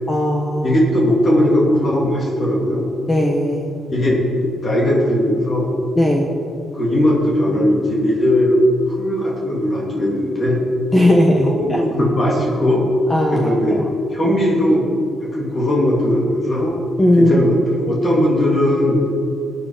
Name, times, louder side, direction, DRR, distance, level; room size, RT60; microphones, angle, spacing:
voice 1, 0.1-0.8 3.1-3.7 6.0-6.3 10.9-11.8 13.1-13.8 14.2-14.3 17.0-17.4, left 1 dB, 15° left, 0 dB, 1.2 m, -17 dB
voice 2, 0.6-2.8 3.9-4.2 4.6-5.7 6.7-8.6 8.9-10.6 11.4-12.8 13.3-13.8 14.1-14.8 15.3-16.8 17.2-19.0, left 1 dB, 35° left, -3 dB, 3.0 m, -18 dB
19.5 x 9.0 x 5.1 m, 2.4 s
cardioid pair, 130°, 0 cm